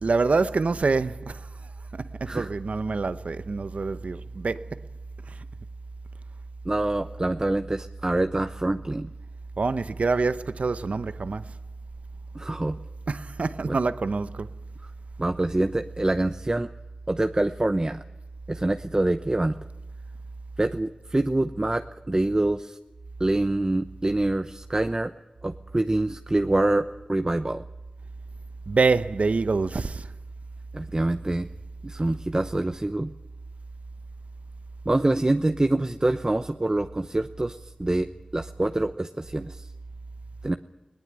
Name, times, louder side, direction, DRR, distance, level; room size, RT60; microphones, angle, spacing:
voice 1, 0.0-1.4 2.2-4.6 9.6-11.4 13.1-14.5 28.7-30.1, right 4 dB, 85° right, 0.9 m, -25 dB
voice 2, 6.6-9.1 12.3-12.8 13.7-13.8 14.8-14.9 15.2-16.7 17.1-18.0 18.5-19.6 20.6-22.8 23.2-25.1 25.4-27.6 30.7-31.5 31.8-33.1 34.8-39.7 40.4-40.6, right 2 dB, 30° right, 0.9 m, -25 dB
20.5 x 19.0 x 9.0 m
wide cardioid pair, 50°, 2 cm